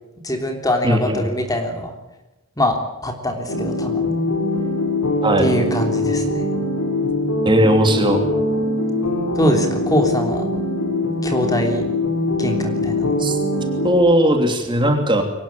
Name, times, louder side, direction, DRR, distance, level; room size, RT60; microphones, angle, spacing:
voice 1, 0.2-1.9 2.6-2.8 3.0-4.2 5.4-6.4 9.4-10.5 11.2-11.8 12.4-13.3, equal, 15° left, 4 dB, 3.3 m, -22 dB
voice 2, 0.8-1.3 5.2-5.5 7.4-8.2 13.2-13.4 13.8-15.2, equal, 20° right, 5 dB, 3.0 m, -17 dB
sound 1, 3.5-13.9, left 1 dB, 75° left, 4.7 m, -22 dB
23.5 x 19.5 x 8.7 m, 1.0 s
head